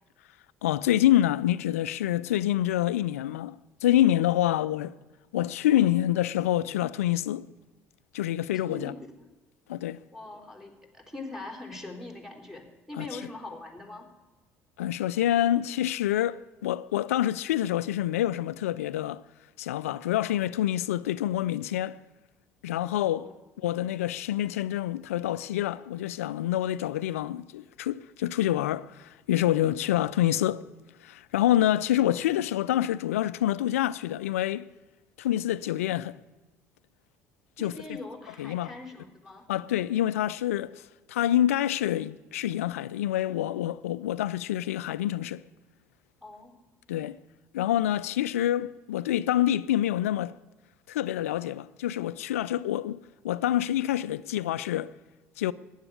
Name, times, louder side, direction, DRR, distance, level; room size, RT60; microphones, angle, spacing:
voice 1, 0.6-4.9 5.3-7.5 8.1-8.9 9.7-10.0 13.0-13.2 14.8-19.2 19.6-22.0 22.6-23.3 23.6-30.6 31.0-34.7 35.2-36.2 37.6-37.8 38.4-38.7 39.5-45.4 46.9-47.2 47.5-50.4 50.9-54.9 55.4-55.5, left 12 dB, 80° left, 0.4 m, -27 dB
voice 2, 8.7-9.1 10.1-14.1 23.1-23.3 37.6-39.5 46.2-46.6, left 2 dB, 5° right, 3.9 m, -42 dB
15.5 x 10.5 x 8.4 m
figure-of-eight pair, 55°, 8 cm